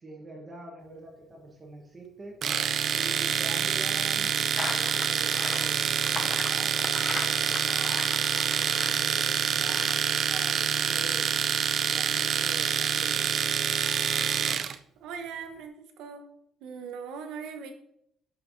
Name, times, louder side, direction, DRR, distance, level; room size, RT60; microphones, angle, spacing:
voice 1, 0.0-2.4 2.9-8.1 8.5-11.3 11.9-13.3, right 2 dB, 25° right, 0 dB, 1.2 m, -45 dB
Domestic sounds home sounds, 2.4-14.7, right 8 dB, 45° right, 0.4 m, -27 dB
sound 1, 4.6-11.2, left 3 dB, 25° left, 0.7 m, -38 dB
voice 2, 15.0-16.3 16.6-17.7, right 6 dB, 80° right, 5 dB, 1.1 m, -39 dB
11.0 x 5.6 x 2.7 m, 0.74 s
cardioid pair, 150°, 0 cm